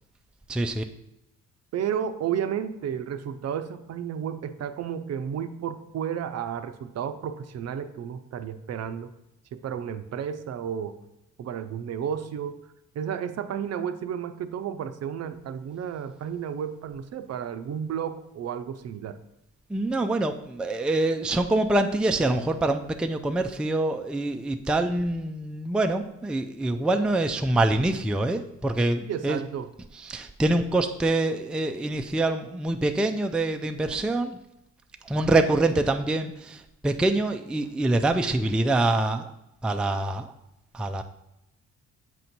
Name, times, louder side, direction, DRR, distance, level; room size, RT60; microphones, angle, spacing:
voice 1, 0.5-0.8 19.7-29.4 29.9-34.4 35.0-39.3 39.6-40.3 40.7-41.0, right 2 dB, 5° right, 6 dB, 0.3 m, -25 dB
voice 2, 1.7-9.1 9.5-11.0 11.4-12.6 13.0-19.2 29.1-29.7, right 8 dB, 55° right, 9 dB, 0.6 m, -32 dB
7.4 x 2.7 x 5.9 m, 0.86 s
cardioid pair, 90°, 30 cm